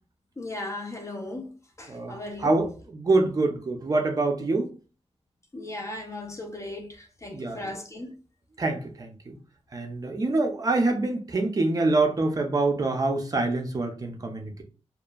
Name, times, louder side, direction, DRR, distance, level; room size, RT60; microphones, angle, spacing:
voice 1, 0.4-2.6 5.5-8.2, left 2 dB, 25° left, 0.4 m, -37 dB
voice 2, 1.9-4.7 7.3-7.6 8.6-9.4 9.7-14.6, right 2 dB, 35° right, 0.5 m, -26 dB
2.8 x 2.4 x 2.2 m
wide cardioid pair, 145°, 11 cm